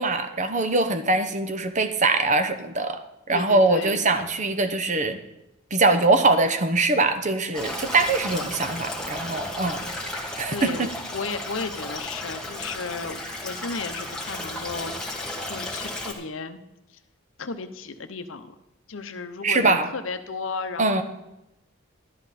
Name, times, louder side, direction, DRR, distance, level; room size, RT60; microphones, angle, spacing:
voice 1, 0.0-3.0 3.3-5.2 5.7-9.9 10.4-10.9 19.4-19.9 20.8-21.0, right 2 dB, 35° right, 8 dB, 1.0 m, -22 dB
voice 2, 3.3-4.0 10.5-14.9 15.5-16.6 16.9-17.0 17.4-18.5 18.9-21.0, left 4 dB, 65° left, 9 dB, 0.8 m, -34 dB
Stream, 7.5-16.1, left 1 dB, 5° left, 1.9 m, -34 dB
13.0 x 11.5 x 4.2 m, 0.91 s
head